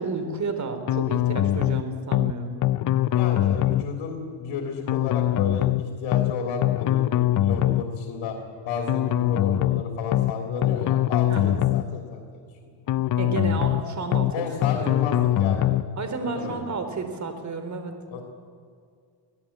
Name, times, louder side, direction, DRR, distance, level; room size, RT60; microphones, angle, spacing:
voice 1, 0.0-2.6 11.3-11.6 13.2-14.5 14.8-15.3 16.0-17.9, right 4 dB, 35° right, 7 dB, 3.7 m, -31 dB
sound 1, 0.9-1.8 2.1-2.3 2.6-3.9 4.9-5.8 6.1-6.3 6.6-7.9 8.9-9.8 10.1-10.3 10.6-11.9 12.9-13.8 14.1-14.3 14.6-15.9, left 13 dB, 40° left, 0.6 m, -22 dB
voice 2, 3.1-8.4 8.7-12.2 14.3-15.7 16.2-16.6 18.1-18.2, left 5 dB, 80° left, 1 dB, 3.5 m, -32 dB
23.5 x 16.5 x 8.8 m, 2.2 s
cardioid pair, 120°, 47 cm